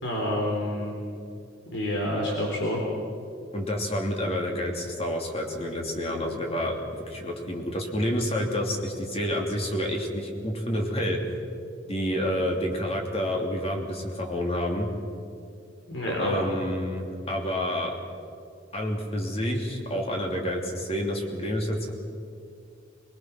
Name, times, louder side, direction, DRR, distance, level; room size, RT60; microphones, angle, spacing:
voice 1, 0.0-0.9 1.7-2.8 15.9-16.3, left 1 dB, 70° left, -2 dB, 4.3 m, -28 dB
voice 2, 3.5-11.2 11.9-14.9 16.1-17.9 18.7-21.9, equal, 30° left, 1 dB, 2.9 m, -29 dB
23.5 x 21.5 x 6.2 m, 2.4 s
head